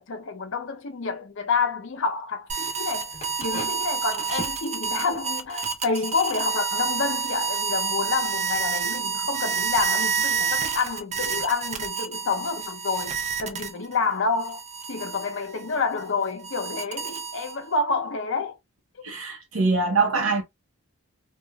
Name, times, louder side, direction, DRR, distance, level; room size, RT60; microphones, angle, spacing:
voice 1, 0.0-3.1 3.4-14.6 14.9-18.6, left 4 dB, 60° left, 0.6 m, -28 dB
sound 1, 2.5-14.0 14.4-17.8, right 6 dB, 30° right, 0.4 m, -29 dB
sound 2, 3.1-7.0 7.9-8.0 8.3-8.7, left 1 dB, 30° left, 0.8 m, -40 dB
voice 2, 19.0-20.4, right 4 dB, 70° right, 0.8 m, -23 dB
2.9 x 2.4 x 2.2 m
head